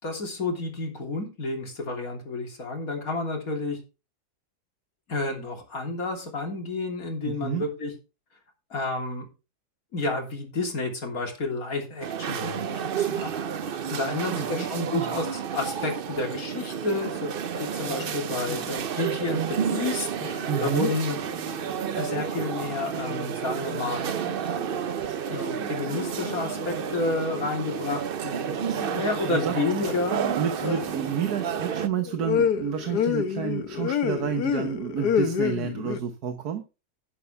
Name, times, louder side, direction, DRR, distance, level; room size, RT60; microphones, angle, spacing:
voice 1, 0.0-3.8 5.1-7.9 8.7-9.3 9.9-17.3 17.6-21.2 21.9-24.1 25.3-30.4, left 3 dB, 60° left, 2 dB, 3.6 m, -30 dB
voice 2, 7.2-7.6 14.1-15.1 20.5-20.9 28.3-29.6 30.4-36.6, right 8 dB, 75° right, 8 dB, 1.6 m, -30 dB
sound 1, 12.0-31.9, right 8 dB, 55° right, 0.6 m, -31 dB
sound 2, 17.1-17.2 17.5-18.2 18.5-19.4 20.2-22.3 22.6-23.8 24.2-25.2 25.5-27.9 29.0-29.2 29.8-30.2 30.6-36.0, left 7 dB, 80° left, 1.6 m, -31 dB
11.5 x 10.0 x 3.4 m, 0.29 s
omnidirectional pair, 1.7 m